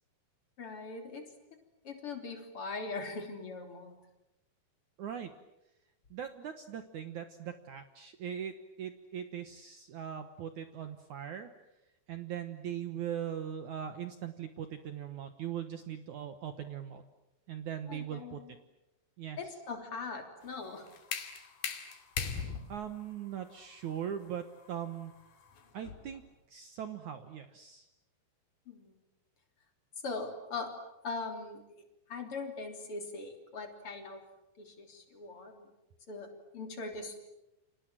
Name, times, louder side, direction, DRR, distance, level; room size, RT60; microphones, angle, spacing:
voice 1, 0.6-1.2 1.8-4.0 17.9-18.5 19.4-20.8 28.7-28.9 30.0-30.7 31.0-31.6 32.1-34.2 34.6-35.7 36.1-36.3 36.5-37.2, left 3 dB, 30° left, 4 dB, 3.8 m, -41 dB
voice 2, 5.0-5.3 6.1-11.5 12.1-17.0 17.5-18.4 19.2-19.5 22.7-25.1 25.7-26.2 26.5-27.9, right 9 dB, 75° right, 9 dB, 1.7 m, -40 dB
sound 1, 20.4-26.2, left 7 dB, 55° left, 3.8 m, -41 dB
29.5 x 26.5 x 7.6 m, 0.92 s
omnidirectional pair, 5.2 m